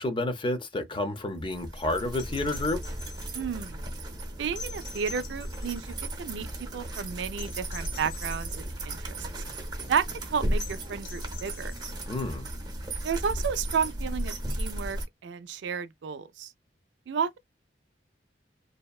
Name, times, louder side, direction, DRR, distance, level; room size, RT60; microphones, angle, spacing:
voice 1, 0.0-2.8 12.1-12.5, left 2 dB, 30° left, 0.6 m, -30 dB
sound 1, 1.4-15.1, right 1 dB, 25° right, 0.7 m, -35 dB
sound 2, 2.1-3.4 4.6-6.1 7.4-8.7 10.6-12.0 13.9-14.0, left 5 dB, 90° left, 0.8 m, -46 dB
voice 2, 3.3-3.8 4.4-6.5 6.7-9.2 9.9-11.7 13.0-16.5 17.1-17.4, right 6 dB, 80° right, 0.4 m, -32 dB
2.7 x 2.1 x 2.2 m
head